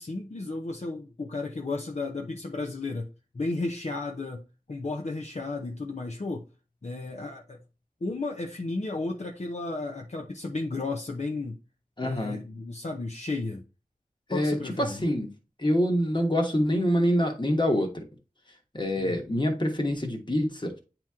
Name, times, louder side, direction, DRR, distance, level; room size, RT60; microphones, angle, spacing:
voice 1, 0.0-6.5 6.8-7.6 8.0-11.6 12.0-13.6 14.3-15.0 19.0-19.2, left 3 dB, 50° left, 0.8 m, -33 dB
voice 2, 12.0-12.4 14.3-15.3 15.6-18.0 18.7-20.8, equal, 30° left, 1.4 m, -26 dB
9.0 x 3.0 x 3.6 m
wide cardioid pair, 60°, 15 cm